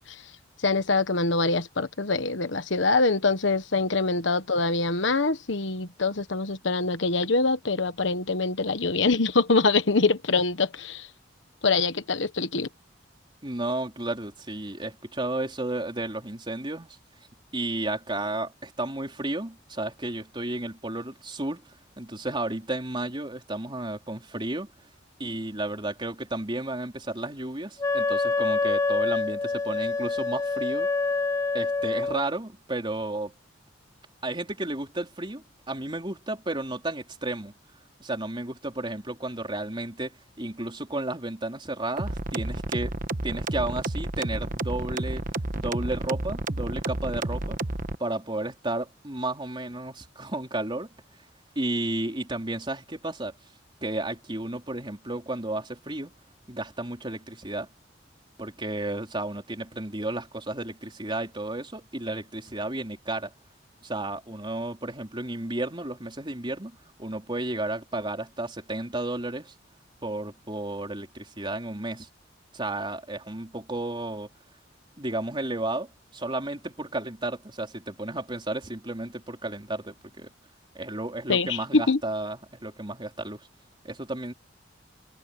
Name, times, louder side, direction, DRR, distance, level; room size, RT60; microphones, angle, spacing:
voice 1, 0.6-11.1 11.6-12.7 81.3-82.0, left 3 dB, 70° left, 1.3 m, -24 dB
voice 2, 13.4-17.0 17.5-21.6 22.0-24.7 25.2-30.9 31.5-33.3 34.2-37.5 38.0-43.0 43.2-45.2 45.5-47.6 48.0-50.9 51.6-53.3 53.8-56.1 56.5-57.7 58.4-63.3 63.8-69.5 70.0-72.1 72.5-74.3 75.0-80.3 80.7-83.5 83.8-84.3, right 2 dB, 25° right, 4.0 m, -32 dB
Wind instrument woodwind instrument, 27.8-32.3, left 3 dB, 15° left, 0.9 m, -26 dB
sound 1, 42.0-47.9, right 2 dB, 45° right, 1.3 m, -31 dB
head